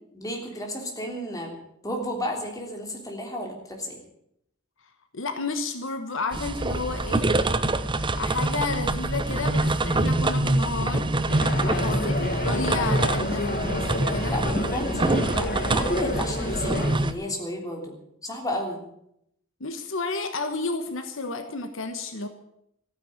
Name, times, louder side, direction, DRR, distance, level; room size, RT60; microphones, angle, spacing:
voice 1, 0.1-1.6 1.8-4.0 11.6-11.9 14.3-17.9 18.2-18.8, equal, 15° left, 1 dB, 3.3 m, -32 dB
voice 2, 5.1-7.3 8.2-14.4 19.6-22.3, left 3 dB, 70° left, 8 dB, 1.3 m, -32 dB
sound 1, 6.3-17.1, right 2 dB, 25° right, 0.8 m, -25 dB
sound 2, 11.3-17.0, left 2 dB, 45° left, 1.8 m, -30 dB
14.5 x 9.5 x 8.9 m, 0.76 s
head